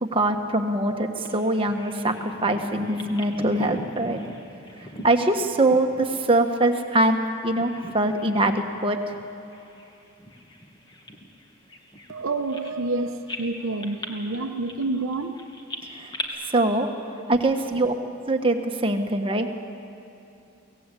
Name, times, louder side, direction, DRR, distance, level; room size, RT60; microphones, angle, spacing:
voice 1, 0.0-4.2 5.0-9.2 15.9-16.1 16.4-16.9 17.3-17.9 18.3-19.5, right 2 dB, 25° right, 4 dB, 1.4 m, -23 dB
Bird vocalization bird call bird song, 1.3-7.2 7.5-8.4 8.7-8.9 9.5-13.0 13.3-16.3, left 1 dB, 20° left, 1.9 m, -40 dB
voice 2, 12.1-15.4 17.1-17.2 17.7-17.9, right 2 dB, 80° right, 4 dB, 1.0 m, -29 dB
24.0 x 17.5 x 8.5 m, 2.8 s
head